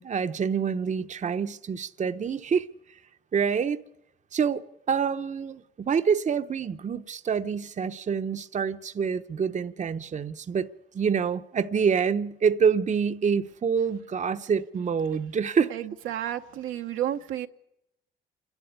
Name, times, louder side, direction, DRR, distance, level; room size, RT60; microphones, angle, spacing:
voice 1, 0.0-2.7 3.3-3.8 4.3-10.7 10.9-15.7, right 6 dB, 35° right, 0.8 m, -26 dB
voice 2, 15.7-17.5, right 11 dB, 85° right, 1.0 m, -31 dB
28.0 x 11.5 x 9.4 m
cardioid pair, 90°, 20 cm